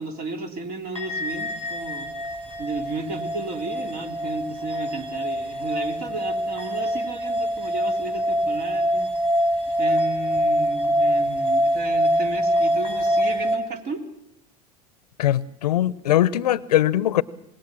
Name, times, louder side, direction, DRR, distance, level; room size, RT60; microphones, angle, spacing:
voice 1, 0.0-2.1 2.6-9.1 9.8-14.0, right 3 dB, 50° right, 3.6 m, -33 dB
sound 1, 0.9-13.6, equal, 25° right, 6.1 m, -24 dB
voice 2, 15.2-17.2, left 12 dB, 85° left, 0.7 m, -21 dB
26.0 x 20.5 x 6.2 m
hypercardioid pair, 90°, 20 cm